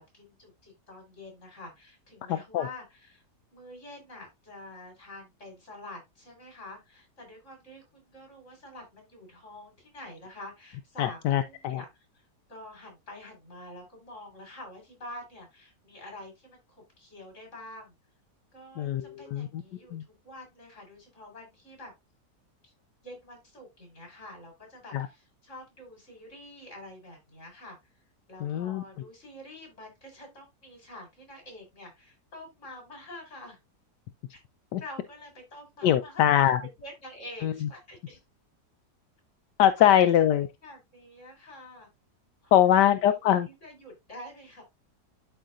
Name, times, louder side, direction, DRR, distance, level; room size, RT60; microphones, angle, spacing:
voice 1, 0.1-3.2 3.5-11.9 12.5-17.9 18.5-21.9 22.6-22.7 23.0-27.8 28.3-33.6 34.3-34.4 34.8-36.2 36.8-38.2 39.8-40.1 40.6-41.9 42.4-42.7 43.1-44.6, left 1 dB, 45° left, 4.6 m, -47 dB
voice 2, 2.3-2.7 11.0-11.8 18.8-19.6 19.9-20.0 24.9-25.1 28.4-28.8 34.7-34.8 35.8-36.6 37.4-37.7 39.6-40.5 42.5-43.5, left 11 dB, 85° left, 1.2 m, -23 dB
12.0 x 4.6 x 2.5 m
omnidirectional pair, 1.8 m